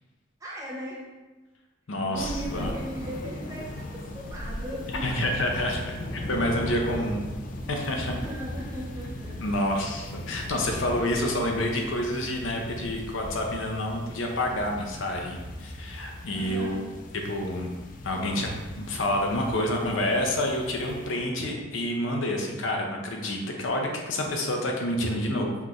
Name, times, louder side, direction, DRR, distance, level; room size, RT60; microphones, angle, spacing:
voice 1, 0.4-1.0 2.0-5.3 8.1-9.6 16.3-16.9, equal, 15° right, -5 dB, 0.9 m, -38 dB
voice 2, 1.9-2.7 5.0-5.8 6.1-7.2 7.7-8.1 9.4-16.8 17.2-17.7 18.0-18.5 18.8-25.5, left 1 dB, 80° left, 1 dB, 0.7 m, -28 dB
sound 1, 2.1-21.2, left 1 dB, 40° left, 0.4 m, -38 dB
5.7 x 3.1 x 2.5 m, 1.2 s
head